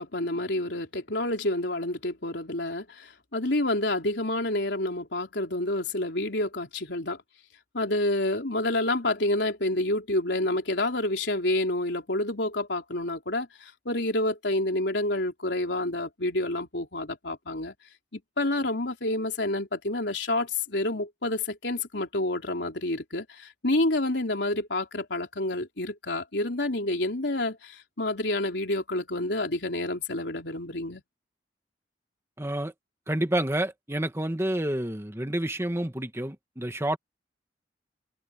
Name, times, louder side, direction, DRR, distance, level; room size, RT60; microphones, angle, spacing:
voice 1, 0.0-7.2 7.7-17.7 18.1-31.0, left 1 dB, 75° left, 3.9 m, -28 dB
voice 2, 32.4-32.7 33.1-37.0, right 1 dB, 15° right, 1.6 m, -29 dB
head